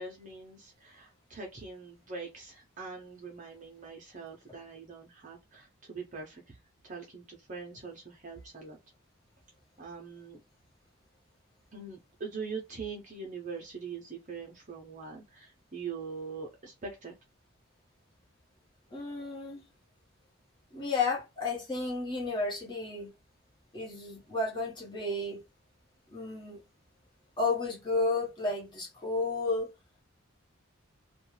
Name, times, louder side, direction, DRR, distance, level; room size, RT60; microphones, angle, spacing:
voice 1, 0.0-6.6 6.8-8.8 9.8-10.4 11.7-17.1, right 4 dB, 35° right, 0.6 m, -43 dB
voice 2, 18.9-19.6 20.7-23.1 23.7-25.4 26.1-26.6 27.4-29.7, left 3 dB, 20° left, 1.0 m, -32 dB
2.4 x 2.3 x 3.1 m
head